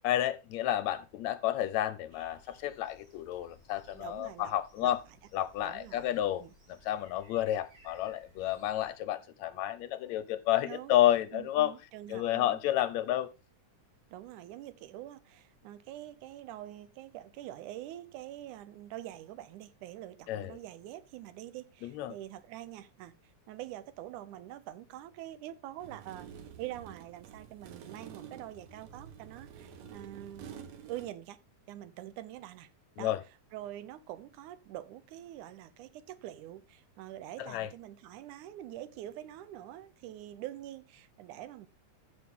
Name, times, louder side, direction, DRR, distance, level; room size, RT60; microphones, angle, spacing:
voice 1, 0.0-5.0 5.3-6.4 6.9-11.7 12.1-13.3 20.3-20.5 21.8-22.1 33.0-33.2 37.4-37.7, left 12 dB, 75° left, 1.7 m, -30 dB
sound 1, 2.1-8.9, left 1 dB, 40° right, 5.2 m, -61 dB
voice 2, 3.9-4.5 4.8-4.9 5.6-6.1 6.4-6.6 10.7-11.0 11.3-12.6 14.1-23.1 23.5-30.6 30.9-31.4 31.7-32.7 33.0-33.2 33.5-41.7, right 13 dB, 80° right, 2.2 m, -45 dB
sound 2, 25.8-31.1, right 8 dB, 65° right, 2.3 m, -49 dB
14.0 x 6.4 x 3.6 m
omnidirectional pair, 3.5 m